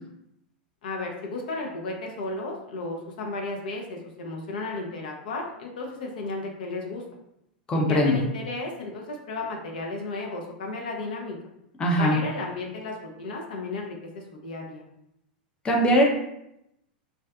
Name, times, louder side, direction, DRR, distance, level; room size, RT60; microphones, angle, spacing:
voice 1, 0.8-7.0 7.9-11.4 12.0-14.8, left 2 dB, 65° left, 1 dB, 0.5 m, -34 dB
voice 2, 7.7-8.2 11.8-12.2 15.6-16.1, equal, 20° left, -1 dB, 0.5 m, -20 dB
2.4 x 2.3 x 2.3 m, 0.81 s
hypercardioid pair, 95°, 5 cm